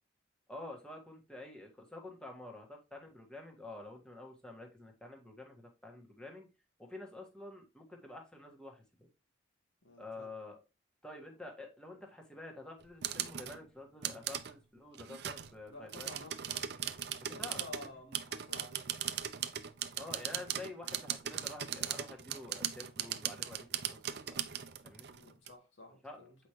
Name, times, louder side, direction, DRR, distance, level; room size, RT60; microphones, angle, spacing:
voice 1, 0.5-6.5 6.8-9.1 10.0-10.6 11.0-16.1 16.7-16.8 17.2-17.6 20.0-23.7 24.2-24.5 24.8-25.1 26.0-26.2, left 2 dB, 5° left, 1.5 m, -49 dB
voice 2, 9.8-10.3 15.7-16.4 17.2-18.9 25.1-26.4, left 2 dB, 75° left, 2.5 m, -51 dB
sound 1, 12.8-13.6 14.0-14.5 15.0-15.5 15.9-25.5, right 10 dB, 55° right, 0.6 m, -39 dB
8.1 x 5.0 x 3.0 m
head